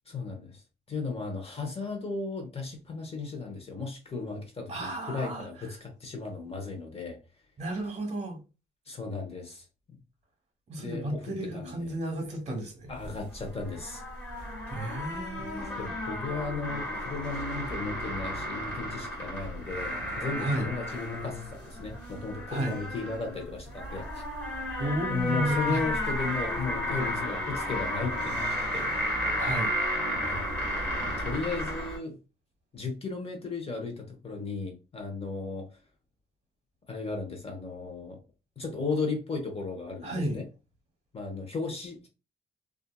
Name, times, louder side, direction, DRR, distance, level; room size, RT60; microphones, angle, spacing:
voice 1, 0.1-0.6 0.9-7.2 8.9-10.0 10.8-11.7 12.9-14.0 15.4-24.2 25.1-28.9 30.2-30.4 31.1-32.2 32.7-35.7 36.9-38.2 38.6-40.4 41.1-42.1, left 4 dB, 30° left, 0.9 m, -35 dB
voice 2, 4.7-5.7 7.6-8.4 10.7-12.9 14.4-15.9 20.4-20.7 22.5-22.8 24.8-25.8 29.4-29.7 40.0-40.4, right 1 dB, 35° right, 1.1 m, -33 dB
sound 1, 12.9-32.0, equal, 10° left, 1.4 m, -33 dB
2.6 x 2.5 x 2.3 m
cardioid pair, 90°, 20 cm